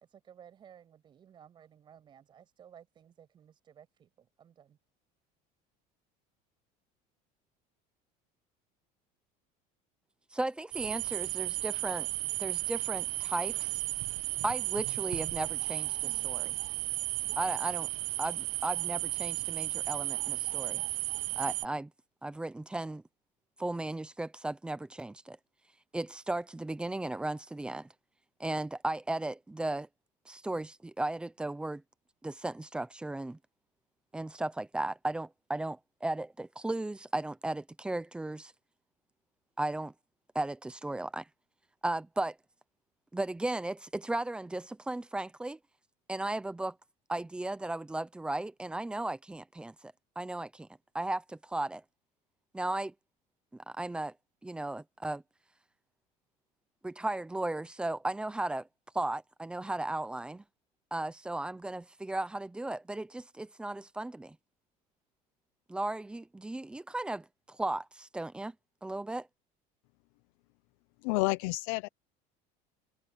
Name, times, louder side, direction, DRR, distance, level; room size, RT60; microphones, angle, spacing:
voice 1, 0.1-4.8, right 8 dB, 25° right, 7.0 m, -57 dB
voice 2, 10.3-12.1 12.4-13.8 14.4-16.5 17.4-17.9 18.2-20.8 21.4-21.9 22.2-23.0 23.6-25.4 25.9-27.9 28.4-29.9 30.3-31.8 32.2-33.4 34.1-38.5 39.6-39.9 40.3-41.3 41.8-42.4 43.1-45.6 46.1-46.8 47.1-50.7 50.9-51.8 52.5-52.9 53.5-54.1 54.4-55.2 56.8-58.7 58.9-60.4 60.9-64.4 65.7-68.5 68.8-69.3, right 2 dB, 5° right, 0.7 m, -35 dB
sound 1, 10.7-21.7, right 21 dB, 80° right, 1.0 m, -34 dB
voice 3, 71.0-71.9, left 23 dB, 80° left, 0.6 m, -29 dB
cardioid pair, 175°, 17 cm